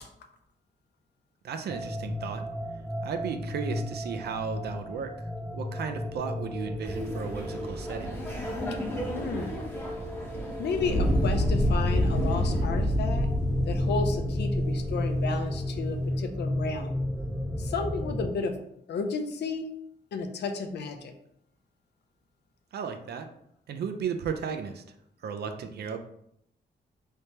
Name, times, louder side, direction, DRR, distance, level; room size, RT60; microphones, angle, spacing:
voice 1, 1.4-2.5 3.0-5.3 5.5-8.2 22.7-23.3 23.7-24.8 25.2-26.0, right 6 dB, 75° right, 7 dB, 0.4 m, -34 dB
sound 1, 1.7-18.3, left 1 dB, 5° right, 0.3 m, -33 dB
Laughter, 6.8-12.6, equal, 10° left, 0.7 m, -37 dB
voice 2, 9.1-9.6 10.6-13.3 13.7-16.9 17.6-18.6 18.9-19.7 20.1-21.1, left 4 dB, 85° left, 5 dB, 0.5 m, -32 dB
Fire, 10.7-15.9, equal, 45° left, 0.9 m, -27 dB
3.2 x 3.2 x 2.8 m, 0.74 s
wide cardioid pair, 135°, 17 cm